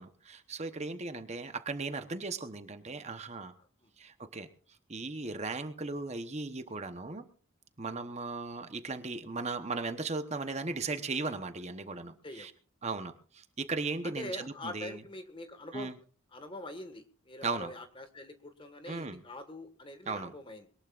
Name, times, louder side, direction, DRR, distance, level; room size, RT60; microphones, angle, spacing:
voice 1, 0.0-3.5 4.0-4.5 4.9-7.3 7.8-12.5 12.8-15.0 15.7-15.9 17.4-17.7 18.9-19.2 20.1-20.3, right 3 dB, 30° right, 8 dB, 1.0 m, -37 dB
voice 2, 3.6-3.9 7.9-8.0 12.2-12.5 14.0-15.9 16.3-20.7, left 1 dB, 25° left, 8 dB, 1.6 m, -44 dB
22.0 x 19.0 x 2.5 m, 0.41 s
head